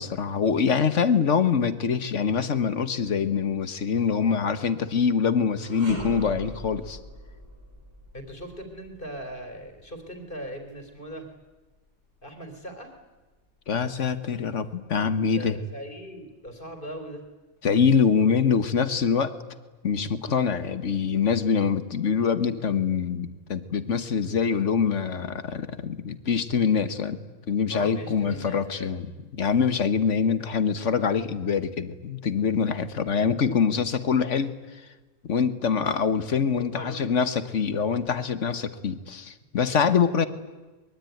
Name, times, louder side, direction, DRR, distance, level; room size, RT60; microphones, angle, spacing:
voice 1, 0.0-7.0 13.7-15.6 17.6-19.3 19.8-27.2 27.5-29.1 29.3-34.5 35.2-40.3, left 6 dB, 60° left, 12 dB, 1.5 m, -24 dB
sound 1, 5.6-14.8 15.2-15.4 16.3-17.1, right 1 dB, 45° right, 6.8 m, -43 dB
voice 2, 8.1-11.3 12.2-12.9 15.4-17.2 27.7-28.9 36.5-37.1 37.3-37.6, right 1 dB, 40° left, 6 dB, 3.6 m, -39 dB
23.5 x 22.0 x 9.3 m, 1.2 s
omnidirectional pair, 1.4 m